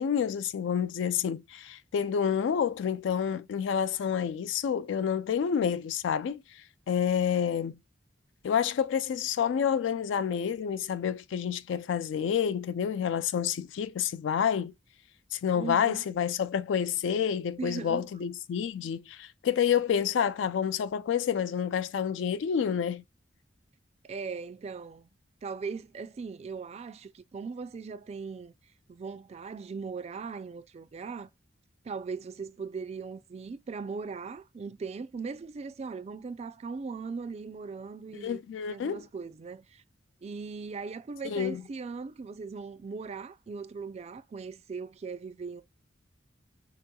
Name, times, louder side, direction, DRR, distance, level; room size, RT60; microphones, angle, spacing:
voice 1, 0.0-7.8 8.4-14.7 15.3-23.0 38.2-39.0 41.2-41.6, left 8 dB, 70° left, 0.3 m, -29 dB
voice 2, 15.5-16.0 17.6-18.1 24.0-25.1 25.4-28.5 28.9-31.3 31.8-38.4 38.7-39.8 40.2-45.6, right 5 dB, 35° right, 0.3 m, -39 dB
4.5 x 2.9 x 2.2 m
head